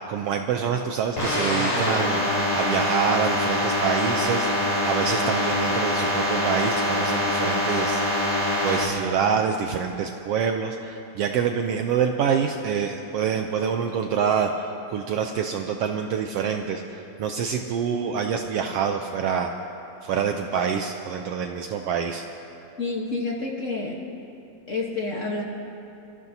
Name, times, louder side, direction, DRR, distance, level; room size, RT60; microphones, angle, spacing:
voice 1, 0.1-4.5 4.8-8.0 8.6-19.5 20.0-22.2, right 7 dB, 80° right, 5 dB, 1.4 m, -26 dB
sound 1, 1.2-8.8, left 1 dB, 25° left, 4.5 m, -24 dB
voice 2, 22.8-24.0 24.7-25.4, left 3 dB, 70° left, -1 dB, 0.7 m, -28 dB
29.0 x 15.0 x 2.8 m, 2.9 s
omnidirectional pair, 3.3 m